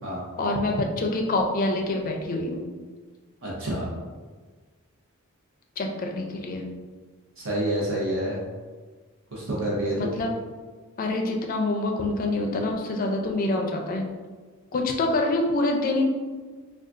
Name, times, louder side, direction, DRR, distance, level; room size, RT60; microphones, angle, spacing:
voice 1, 0.4-2.7 5.8-6.6 10.0-10.3 11.0-14.1 14.7-16.0, left 2 dB, 40° left, 2 dB, 0.4 m, -26 dB
voice 2, 3.4-3.9 7.4-8.4 9.3-10.1, right 1 dB, 65° right, -5 dB, 0.9 m, -28 dB
3.8 x 2.3 x 2.4 m, 1.4 s
head